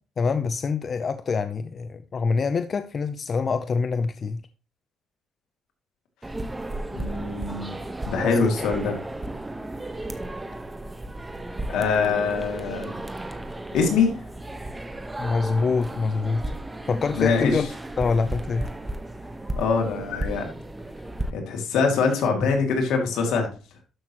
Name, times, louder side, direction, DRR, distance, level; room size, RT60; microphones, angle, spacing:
voice 1, 0.2-4.4 8.2-8.7 15.2-16.4 16.9-17.7 18.0-18.7, left 4 dB, 45° left, 0.6 m, -25 dB
sound 1, 6.2-21.3, right 1 dB, 15° right, 1.2 m, -34 dB
voice 2, 6.9-7.8 8.1-9.0 11.7-13.0 13.7-14.2 17.1-17.6 19.6-20.4 21.3-23.5, left 5 dB, 85° left, 2.5 m, -23 dB
12.5 x 6.2 x 3.0 m
cardioid pair, 90°, 0 cm